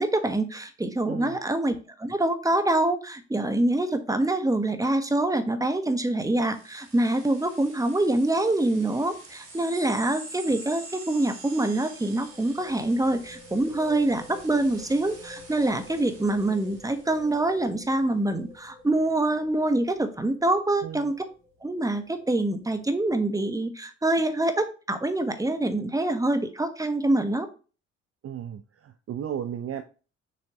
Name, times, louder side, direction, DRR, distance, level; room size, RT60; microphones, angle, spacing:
voice 1, 0.0-21.1 21.6-27.5, right 2 dB, 10° right, 8 dB, 1.3 m, -25 dB
voice 2, 1.1-1.4 20.8-21.1 28.2-29.8, right 9 dB, 40° right, 9 dB, 0.7 m, -34 dB
sound 1, 6.4-17.5, right 2 dB, 60° right, 2.9 m, -46 dB
sound 2, 8.9-9.2 9.4-9.5 12.0-23.4, equal, 80° right, 1.9 m, -50 dB
6.8 x 6.3 x 3.1 m, 0.35 s
figure-of-eight pair, 45°, 36 cm